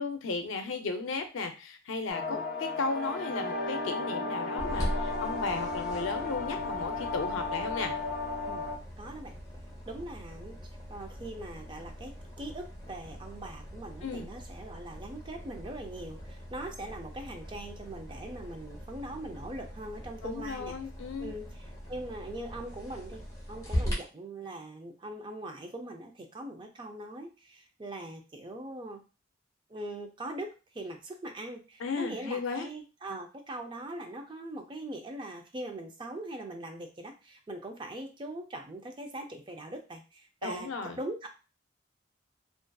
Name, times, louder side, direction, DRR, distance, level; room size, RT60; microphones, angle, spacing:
voice 1, 0.0-7.9 14.0-14.3 20.2-21.3 31.8-32.7 40.4-41.0, left 4 dB, 80° left, 6 dB, 0.5 m, -35 dB
sound 1, 2.1-8.7, left 3 dB, 45° left, 0.8 m, -34 dB
sound 2, 4.6-23.9, equal, 15° left, 0.8 m, -41 dB
voice 2, 9.0-9.4 9.9-20.8 21.2-23.2 23.5-29.0 29.7-40.7 41.0-41.3, right 1 dB, 25° right, 4 dB, 0.3 m, -41 dB
2.5 x 2.4 x 2.2 m, 0.32 s
head